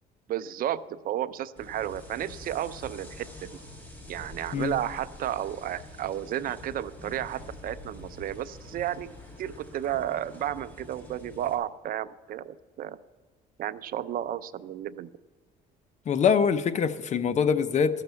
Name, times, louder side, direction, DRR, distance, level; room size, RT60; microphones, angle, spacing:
voice 1, 0.3-3.6 4.1-9.1 9.4-13.0 13.6-15.1, right 11 dB, 60° right, 14 dB, 0.6 m, -32 dB
sound 1, 1.6-11.6, left 1 dB, 10° left, 2.6 m, -46 dB
voice 2, 16.1-18.0, left 6 dB, 45° left, 12 dB, 0.7 m, -24 dB
13.0 x 6.7 x 8.1 m, 1.3 s
cardioid pair, 110°, 17 cm